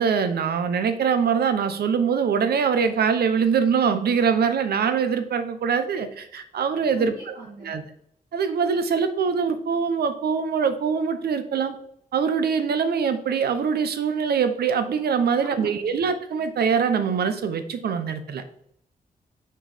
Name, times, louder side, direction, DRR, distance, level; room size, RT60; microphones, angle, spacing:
voice 1, 0.0-7.1 7.6-7.8 8.3-11.8 12.1-18.4, right 6 dB, 85° right, 10 dB, 0.8 m, -23 dB
voice 2, 6.9-7.8 15.4-16.0, right 3 dB, 65° right, -7 dB, 2.2 m, -41 dB
6.3 x 4.7 x 4.9 m, 0.71 s
wide cardioid pair, 170°, 16 cm